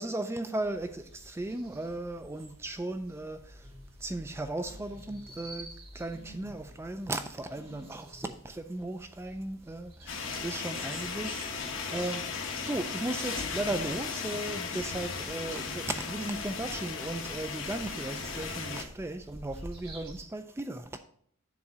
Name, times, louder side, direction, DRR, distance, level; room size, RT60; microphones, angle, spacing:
voice 1, 0.0-3.7 4.0-12.4 12.7-21.0, right 2 dB, 10° right, 0.3 m, -36 dB
sound 1, 0.6-20.3, equal, 85° right, 2.4 m, -51 dB
sound 2, 3.6-3.8 4.6-5.5 6.1-6.8 7.5-8.4, right 1 dB, 50° left, 2.0 m, -53 dB
sound 3, 10.1-18.8, left 5 dB, 70° left, 1.1 m, -36 dB
7.0 x 3.8 x 6.1 m
head